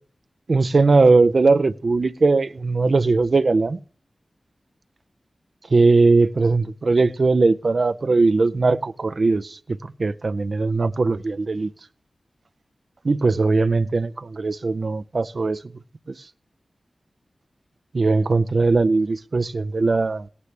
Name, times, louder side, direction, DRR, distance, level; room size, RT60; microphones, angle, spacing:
voice 1, 0.5-3.8 5.7-11.7 13.0-15.6 16.1-16.2 17.9-20.3, right 3 dB, 65° right, 0.4 m, -19 dB
16.5 x 9.7 x 3.3 m
cardioid pair, 40°, 0 cm